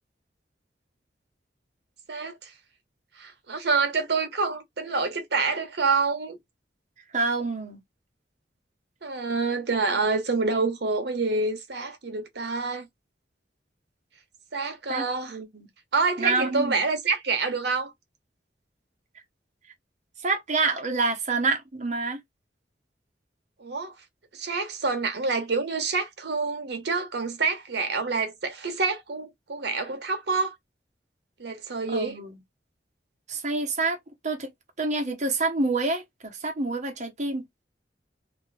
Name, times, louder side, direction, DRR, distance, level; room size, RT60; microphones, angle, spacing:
voice 1, 2.1-2.5 3.2-6.4 9.0-12.9 14.5-15.4 15.9-17.9 23.6-23.9 24.3-30.5 31.4-32.2, right 4 dB, 70° right, 0.9 m, -27 dB
voice 2, 7.1-7.8 14.9-15.0 15.3-15.7 16.2-16.8 20.2-22.2 31.9-32.4 33.3-34.0 34.2-34.5 34.8-37.5, right 3 dB, 45° right, 1.0 m, -27 dB
2.9 x 2.4 x 3.3 m
head